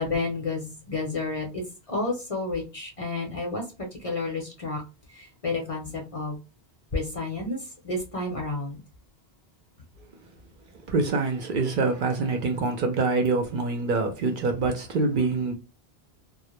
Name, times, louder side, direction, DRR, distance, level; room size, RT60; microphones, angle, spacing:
voice 1, 0.0-4.8 5.1-6.4 6.9-8.8, left 3 dB, 40° left, 0.6 m, -31 dB
voice 2, 10.9-15.5, right 3 dB, 60° right, 0.6 m, -25 dB
2.1 x 2.1 x 2.9 m
omnidirectional pair, 1.0 m